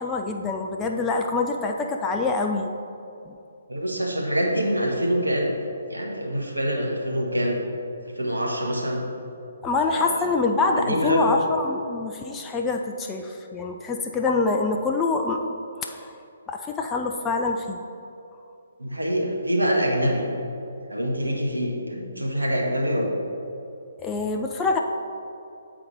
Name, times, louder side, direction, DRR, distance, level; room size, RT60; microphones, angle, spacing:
voice 1, 0.0-2.7 3.3-3.4 9.6-15.5 15.8-16.2 16.5-17.8 24.0-24.8, left 3 dB, 10° left, 2 dB, 0.3 m, -25 dB
voice 2, 3.7-5.5 5.9-7.6 8.2-9.0 9.9-10.2 10.7-11.4 18.8-20.3 20.9-23.1, equal, 80° right, 0 dB, 1.1 m, -25 dB
7.9 x 4.1 x 4.6 m, 2.6 s
figure-of-eight pair, 135°, 0 cm